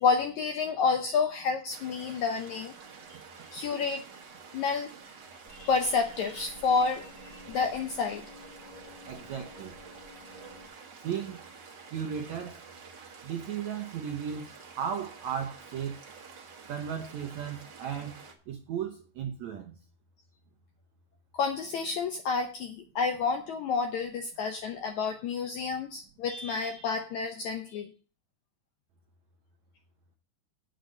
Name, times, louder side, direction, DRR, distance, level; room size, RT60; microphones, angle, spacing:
voice 1, 0.0-2.7 3.5-4.0 4.5-4.9 5.5-8.2 21.3-27.9, left 5 dB, 75° left, 1.7 m, -29 dB
sound 1, 1.7-18.3, right 5 dB, 40° right, 1.7 m, -49 dB
sound 2, 5.4-10.7, left 1 dB, 25° left, 2.9 m, -51 dB
voice 2, 9.1-9.7 11.0-11.4 11.9-12.6 13.2-14.5 14.7-15.9 16.7-18.2 18.5-19.7, right 8 dB, 75° right, 1.6 m, -35 dB
9.2 x 6.5 x 6.5 m
omnidirectional pair, 4.4 m